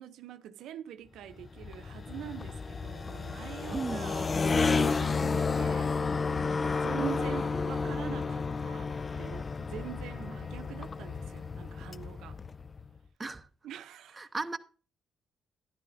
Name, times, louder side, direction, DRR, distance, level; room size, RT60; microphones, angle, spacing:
voice 1, 0.0-6.4 6.8-12.4 13.6-14.3, right 10 dB, 80° right, 0.6 m, -44 dB
sound 1, 1.3-12.9, left 4 dB, 35° left, 0.3 m, -32 dB
voice 2, 3.7-4.1 7.0-8.0 13.2-13.5 14.1-14.6, right 3 dB, 20° right, 0.8 m, -37 dB
11.5 x 10.5 x 2.6 m
cardioid pair, 90°, 0 cm